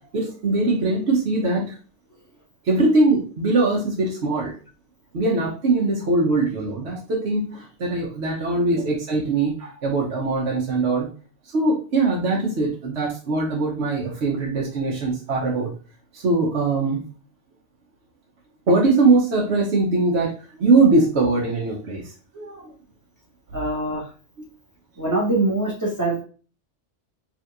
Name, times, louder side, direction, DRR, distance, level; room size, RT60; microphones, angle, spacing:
voice 1, 0.1-1.8 2.6-4.6 5.1-11.1 11.5-15.7 16.1-17.0 18.7-22.7 24.4-24.5, right 3 dB, 70° right, -3 dB, 1.2 m, -21 dB
voice 2, 23.5-24.1 25.0-26.2, right 2 dB, 15° right, -4 dB, 1.8 m, -23 dB
4.4 x 3.4 x 2.5 m, 0.37 s
omnidirectional pair, 1.2 m